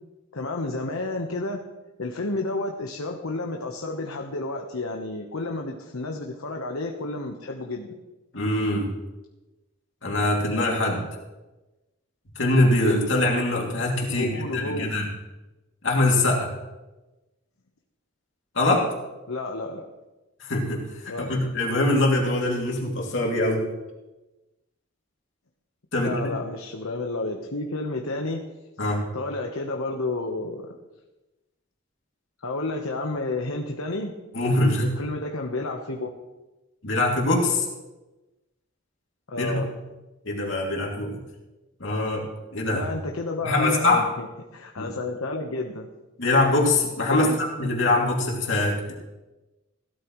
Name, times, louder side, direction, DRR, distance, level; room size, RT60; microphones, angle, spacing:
voice 1, 0.3-1.6 2.0-8.0 14.1-14.9 19.3-19.9 21.1-21.4 26.0-28.5 29.1-30.8 32.4-34.1 34.8-36.1 39.3-39.7 42.7-45.9 47.1-47.4, left 2 dB, 80° left, 2 dB, 1.1 m, -31 dB
voice 2, 8.3-8.9 10.0-11.0 12.4-15.1 15.8-16.5 18.5-18.9 20.4-23.7 25.9-26.3 28.8-29.0 34.3-34.9 36.8-37.7 39.4-39.7 40.2-41.2 41.8-42.9 43.4-44.0 44.8-44.9 46.2-48.9, left 2 dB, 60° left, -1 dB, 2.6 m, -23 dB
16.5 x 12.5 x 3.1 m, 1.1 s
head